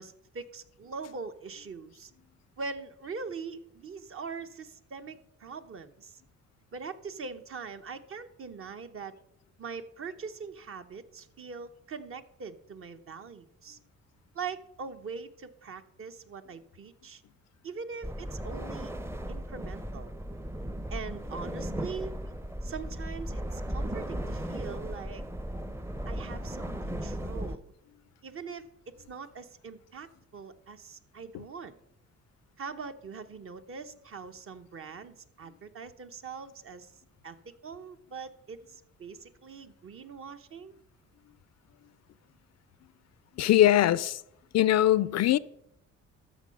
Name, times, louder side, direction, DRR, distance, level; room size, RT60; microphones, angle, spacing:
voice 1, 0.0-2.1 2.6-6.2 6.7-9.1 9.6-13.8 14.3-17.2 17.6-18.9 19.3-20.1 20.9-22.1 22.6-25.2 26.1-27.7 28.2-30.1 30.3-31.8 32.6-36.9 37.2-40.7, right 5 dB, 45° right, 1.0 m, -42 dB
sound 1, 18.0-27.6, right 1 dB, 10° right, 0.7 m, -36 dB
voice 2, 43.4-44.2 44.5-45.4, left 13 dB, 60° left, 0.5 m, -22 dB
13.5 x 6.4 x 5.4 m
cardioid pair, 90°, 30 cm